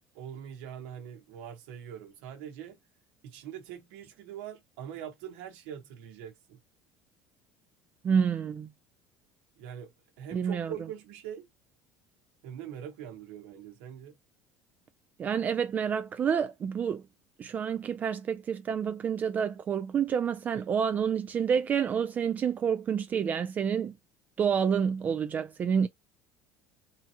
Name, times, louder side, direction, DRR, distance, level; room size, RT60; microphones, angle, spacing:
voice 1, 0.1-2.8 3.2-6.6 9.6-11.5 12.4-14.2, right 9 dB, 85° right, 1.0 m, -43 dB
voice 2, 8.0-8.7 10.3-10.7 15.2-17.0 17.4-23.9 24.4-25.9, right 7 dB, 25° right, 0.3 m, -28 dB
3.6 x 2.8 x 2.8 m
cardioid pair, 145°, 6 cm